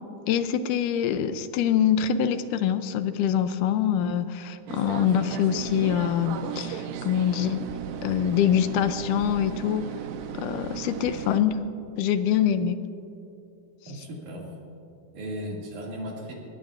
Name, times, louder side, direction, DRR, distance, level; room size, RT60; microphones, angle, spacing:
voice 1, 0.3-7.6 8.0-9.9 10.4-11.6 12.0-12.8, left 9 dB, 80° left, 11 dB, 2.1 m, -24 dB
sound 1, 4.7-11.4, right 8 dB, 80° right, 2.2 m, -36 dB
voice 2, 13.9-14.5 15.1-16.3, equal, 65° right, -2 dB, 3.7 m, -36 dB
21.0 x 18.5 x 2.5 m, 2.7 s
omnidirectional pair, 3.7 m